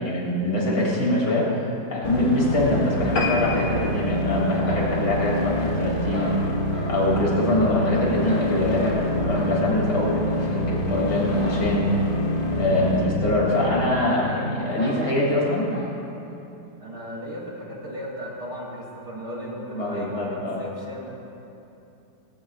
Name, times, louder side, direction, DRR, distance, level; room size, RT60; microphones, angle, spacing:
voice 1, 0.0-1.5 1.9-6.6 6.9-11.9 12.5-15.7 19.7-20.6, left 1 dB, 80° left, -4 dB, 3.5 m, -23 dB
sound 1, 2.0-14.0, equal, 65° left, 1.8 m, -27 dB
sound 2, 3.2-5.9 6.4-6.6 7.0-7.1 7.4-7.5 7.8-7.9, left 3 dB, 50° left, 1.8 m, -31 dB
sound 3, 4.6-5.7 6.1-6.9 7.5-9.0 9.3-9.5 9.8-10.0 10.4-10.5 11.4-11.7 11.9-12.0 12.4-12.5 13.4-13.5 13.7-13.8 14.8-15.0 15.7-15.9, left 1 dB, 5° right, 3.1 m, -38 dB
voice 2, 16.8-21.1, equal, 40° right, -4 dB, 3.2 m, -36 dB
18.5 x 18.0 x 2.5 m, 2.8 s
omnidirectional pair, 1.8 m